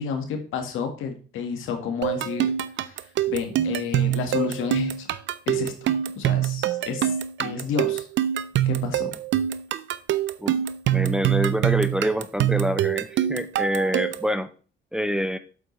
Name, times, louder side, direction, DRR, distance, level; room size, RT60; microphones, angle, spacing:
voice 1, 0.0-2.5 2.9-5.1 5.5-5.7 6.2-7.1 7.4-8.1 8.6-9.1, left 6 dB, 85° left, 5 dB, 1.8 m, -30 dB
sound 1, 2.0-14.3, right 12 dB, 70° right, 0.6 m, -25 dB
voice 2, 10.9-14.5 14.9-15.4, equal, 5° right, 10 dB, 0.7 m, -26 dB
8.1 x 8.0 x 3.3 m, 0.39 s
cardioid pair, 90°, 20 cm